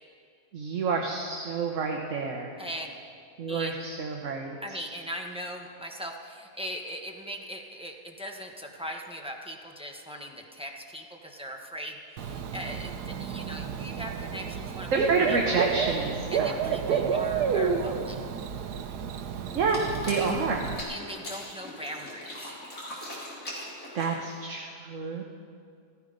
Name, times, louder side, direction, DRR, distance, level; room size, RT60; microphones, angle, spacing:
voice 1, 0.5-2.5 3.4-4.6 14.9-17.1 19.5-20.7 23.9-25.2, right 4 dB, 55° right, 1 dB, 1.3 m, -29 dB
voice 2, 2.6-2.9 3.5-3.8 4.6-15.0 15.3-15.6 16.3-18.2 20.9-22.5, equal, 5° right, 1 dB, 0.9 m, -39 dB
Bird / Cricket, 12.2-20.8, right 6 dB, 80° right, 1.3 m, -30 dB
sound 1, 19.5-24.4, left 1 dB, 55° left, 3.5 m, -41 dB
15.5 x 14.0 x 5.2 m, 2.3 s
omnidirectional pair, 1.7 m